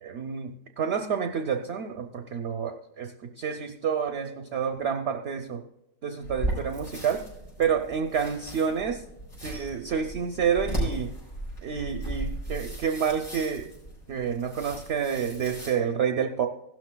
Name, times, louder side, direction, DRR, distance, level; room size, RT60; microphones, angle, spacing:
voice 1, 0.0-5.6 6.0-7.3 7.6-9.0 9.4-11.1 11.6-13.7 14.1-16.5, right 7 dB, 60° right, 5 dB, 0.7 m, -29 dB
sound 1, 6.2-15.7, right 1 dB, 70° left, 5.2 m, -36 dB
16.0 x 12.5 x 2.2 m, 0.87 s
omnidirectional pair, 1.6 m